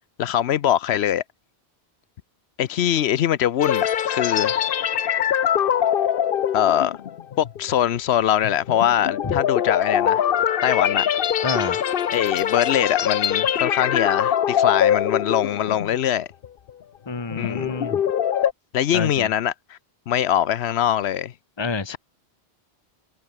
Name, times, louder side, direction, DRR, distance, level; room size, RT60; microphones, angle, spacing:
voice 1, 0.2-1.2 2.6-4.6 6.5-6.9 7.4-10.3 10.6-11.0 12.1-16.3 17.3-17.7 18.7-19.8 20.1-21.3, left 10 dB, 85° left, 1.0 m, -22 dB
sound 1, 3.6-16.1 16.4-16.7 17.2-18.5, left 9 dB, 65° left, 0.9 m, -23 dB
voice 2, 11.4-11.8 17.1-18.0 18.9-19.3 21.6-22.0, left 4 dB, 25° left, 1.3 m, -28 dB
omnidirectional pair, 1.1 m